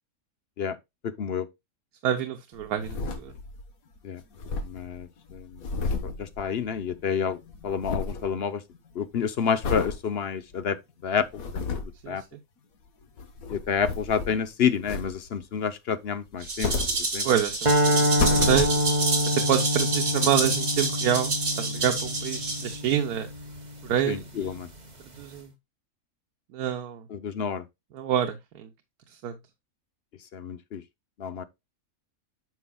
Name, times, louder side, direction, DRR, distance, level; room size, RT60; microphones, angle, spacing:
voice 1, 1.0-1.5 4.0-4.2 4.6-5.6 6.2-8.6 8.9-10.8 11.0-11.3 11.5-11.7 12.1-12.2 13.5-16.7 17.1-17.3 24.1-24.7 27.1-27.6 30.3-30.8 31.2-31.4, left 7 dB, 55° left, 0.8 m, -29 dB
voice 2, 2.0-3.3 12.0-12.2 17.2-18.8 19.3-23.3 23.9-24.6 25.2-25.5 26.5-27.0 27.9-28.7 29.2-29.3, right 9 dB, 85° right, 1.3 m, -27 dB
sound 1, 2.6-3.7 4.0-4.1 4.2-7.0 7.3-8.3 8.7-9.1 9.6-10.0 10.5-10.6 11.2-12.0 13.0-14.5 14.9-15.4 16.3-17.5 17.9-19.1 19.7-19.8, left 4 dB, 70° left, 1.6 m, -32 dB
Rattle (instrument), 16.4-22.9, right 3 dB, 50° right, 2.8 m, -29 dB
sound 2, 17.6-24.0, left 1 dB, 30° right, 1.4 m, -27 dB
9.3 x 6.2 x 2.2 m
omnidirectional pair, 1.6 m